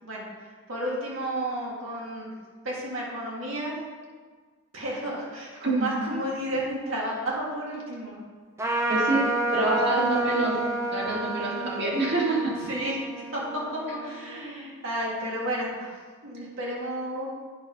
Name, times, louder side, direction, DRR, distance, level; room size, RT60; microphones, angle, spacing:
voice 1, 0.7-2.3 2.6-3.8 4.7-8.2 11.5-11.7 12.7-17.3, right 1 dB, 70° right, -4 dB, 2.1 m, -32 dB
Trumpet, 8.6-14.4, right 2 dB, 15° right, 0.7 m, -30 dB
voice 2, 8.9-9.3 9.5-10.6 10.9-12.5, right 2 dB, 55° right, -4 dB, 2.2 m, -26 dB
8.7 x 5.3 x 5.3 m, 1.5 s
head